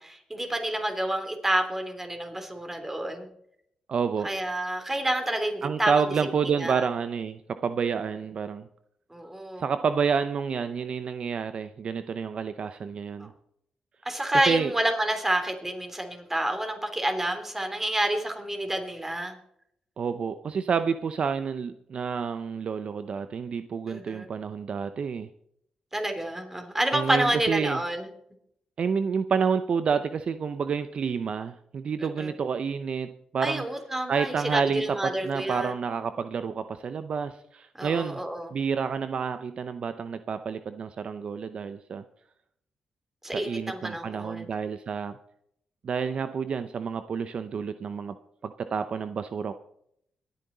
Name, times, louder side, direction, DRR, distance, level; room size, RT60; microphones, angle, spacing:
voice 1, 0.0-3.3 4.2-6.0 6.6-6.8 9.1-9.6 13.2-13.3 14.1-19.4 23.9-24.3 25.9-28.1 32.0-32.3 33.4-35.7 37.8-38.5 43.2-44.5, right 1 dB, 15° right, 5 dB, 3.3 m, -29 dB
voice 2, 3.9-4.3 5.6-8.7 9.6-13.3 14.5-14.7 20.0-25.3 26.9-27.8 28.8-33.7 34.1-38.2 38.5-42.0 43.3-45.2 45.8-48.2 48.4-49.5, right 6 dB, 60° right, 11 dB, 0.6 m, -29 dB
22.5 x 9.4 x 4.0 m, 0.73 s
supercardioid pair, 60°, 2 cm